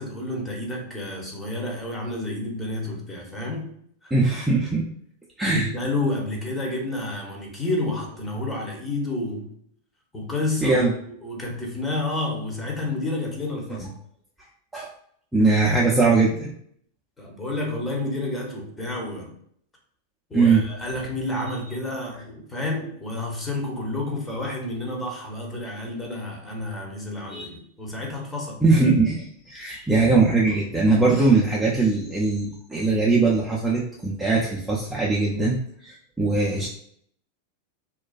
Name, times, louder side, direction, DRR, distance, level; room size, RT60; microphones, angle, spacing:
voice 1, 0.0-3.7 4.0-4.1 5.5-9.6 10.1-10.9 11.2-13.9 17.2-19.4 20.3-28.6, left 2 dB, 15° left, -1 dB, 0.8 m, -30 dB
voice 2, 4.1-4.9 5.4-5.7 10.6-10.9 13.8-13.9 14.7-14.9 15.3-16.5 20.3-20.6 27.3-27.5 28.6-36.7, right 3 dB, 10° right, -4 dB, 0.4 m, -21 dB
2.4 x 2.2 x 2.4 m, 0.65 s
hypercardioid pair, 95°, 0 cm